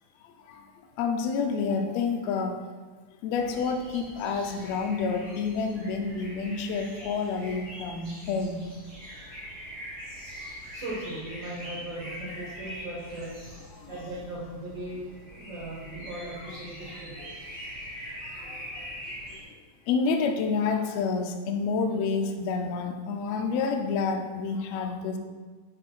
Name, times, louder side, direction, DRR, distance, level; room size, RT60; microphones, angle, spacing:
voice 1, 1.0-2.6 3.2-8.6 13.8-13.9 17.2-17.3 18.4-18.7 19.9-25.2, left 5 dB, 80° left, 4 dB, 1.6 m, -28 dB
sound 1, 3.3-19.4, equal, 20° right, 1.4 m, -43 dB
voice 2, 10.7-13.3 13.9-17.2, right 1 dB, 50° right, -7 dB, 1.6 m, -38 dB
6.1 x 4.7 x 4.4 m, 1.4 s
omnidirectional pair, 3.7 m